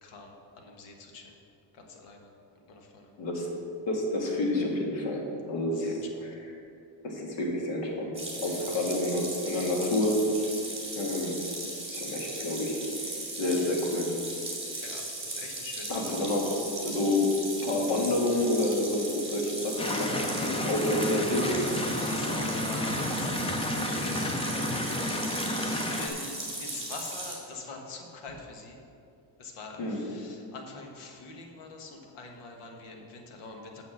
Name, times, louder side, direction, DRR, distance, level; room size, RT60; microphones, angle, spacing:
voice 1, 0.0-0.3 0.6-1.3 1.8-2.3 2.7-3.1 5.8-6.0 14.8-15.9 21.8-24.6 25.5-26.3 26.6-28.8 29.4-33.8, left 3 dB, 85° left, 2 dB, 1.5 m, -44 dB
voice 2, 3.9-6.6 7.0-10.3 10.9-11.4 11.9-12.8 13.1-14.1 15.9-17.3 17.6-21.7 29.8-30.0, left 1 dB, 60° left, 0 dB, 1.8 m, -29 dB
sound 1, 8.1-27.3, right 2 dB, 10° right, 2.2 m, -38 dB
sound 2, 19.8-26.1, left 1 dB, 15° left, 0.4 m, -31 dB
6.9 x 6.3 x 7.2 m, 2.6 s
cardioid pair, 165°, 49 cm